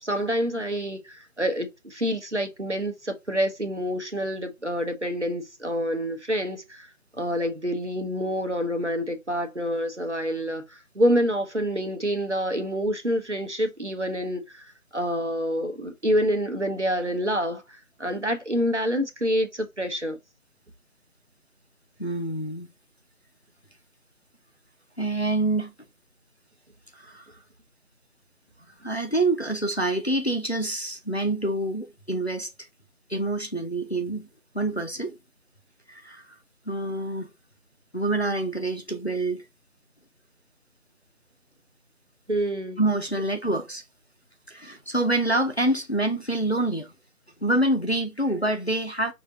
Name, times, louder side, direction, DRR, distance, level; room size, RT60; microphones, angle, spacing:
voice 1, 0.0-6.9 7.2-10.6 10.9-17.6 18.0-20.2 42.3-42.8, equal, 50° right, 0.8 m, -27 dB
voice 2, 22.0-22.7 25.0-25.7 26.9-27.4 28.8-32.5 33.1-34.3 34.5-35.2 35.9-36.2 36.7-37.3 37.9-39.4 42.8-43.8 44.5-46.9 47.4-49.1, right 2 dB, 45° left, 0.6 m, -26 dB
5.0 x 2.6 x 2.5 m
figure-of-eight pair, 175°, 44 cm